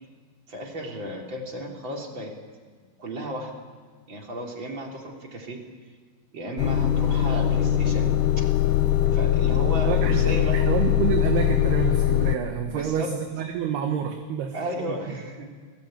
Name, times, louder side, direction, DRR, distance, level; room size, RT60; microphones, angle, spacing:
voice 1, 0.5-2.3 3.0-3.6 4.1-5.6 6.3-8.1 8.4-8.5 9.1-10.6 12.6-13.1 14.5-15.5, right 1 dB, 30° right, 1 dB, 3.6 m, -34 dB
Motor vehicle (road) / Engine starting / Idling, 6.6-12.4, left 11 dB, 90° left, 1.8 m, -21 dB
voice 2, 9.9-15.2, right 9 dB, 70° right, 5 dB, 3.2 m, -29 dB
29.0 x 19.5 x 9.1 m, 1.5 s
omnidirectional pair, 5.1 m